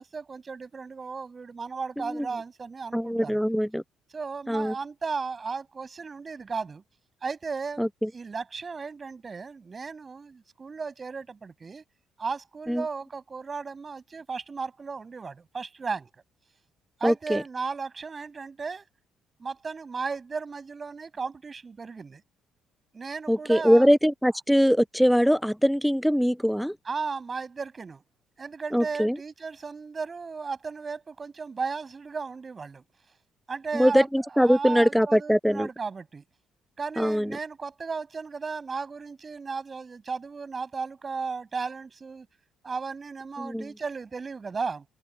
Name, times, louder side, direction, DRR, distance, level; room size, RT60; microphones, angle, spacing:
voice 1, 0.0-3.4 4.1-6.8 7.2-7.8 8.1-11.8 12.2-16.1 17.0-18.8 19.4-22.2 22.9-23.9 26.8-28.0 28.4-32.8 33.5-34.1 34.4-36.2 36.8-42.3 42.6-44.9, right 4 dB, 35° right, 7.6 m, -35 dB
voice 2, 2.0-2.3 2.9-3.8 4.5-4.7 7.8-8.1 12.7-12.9 17.0-17.4 23.3-26.8 28.7-29.2 33.7-35.7 37.0-37.4 43.4-43.7, equal, ahead, 0.7 m, -22 dB
open air
supercardioid pair, 65°, 0 cm